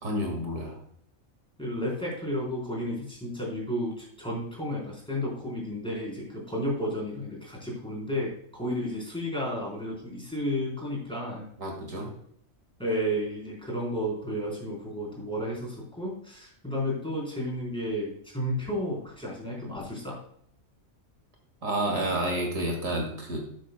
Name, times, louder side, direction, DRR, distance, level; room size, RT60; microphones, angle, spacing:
voice 1, 0.0-0.8 11.6-12.1 21.6-23.4, right 1 dB, 70° right, 1 dB, 2.4 m, -29 dB
voice 2, 1.6-11.5 12.8-20.2, equal, 5° left, -4 dB, 3.9 m, -32 dB
12.5 x 7.8 x 2.2 m, 0.66 s
omnidirectional pair, 1.4 m